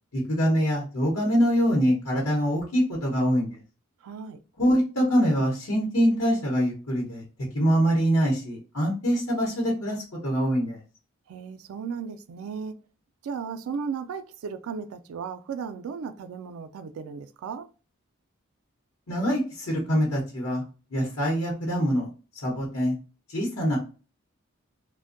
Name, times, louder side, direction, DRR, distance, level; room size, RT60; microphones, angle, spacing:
voice 1, 0.1-3.6 4.6-7.2 7.5-10.8 19.1-20.6 20.9-22.1 22.3-23.0 23.3-23.8, equal, 90° left, 0.9 m, -24 dB
voice 2, 4.0-4.4 11.3-12.8 13.2-17.7, right 6 dB, 85° right, 0.3 m, -35 dB
2.5 x 2.2 x 2.5 m
head